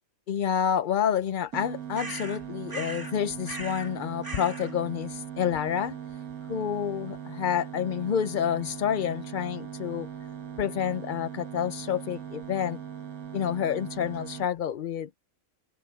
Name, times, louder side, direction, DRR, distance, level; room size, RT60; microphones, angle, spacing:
voice 1, 0.3-6.0 6.5-10.1 10.6-12.8 13.3-15.2, left 8 dB, 55° left, 0.5 m, -29 dB
sound 1, 1.5-14.5, right 9 dB, 90° right, 1.9 m, -40 dB
sound 2, 1.9-3.2 3.4-3.9 4.2-4.7, right 2 dB, 15° right, 2.8 m, -39 dB
omnidirectional pair, 1.5 m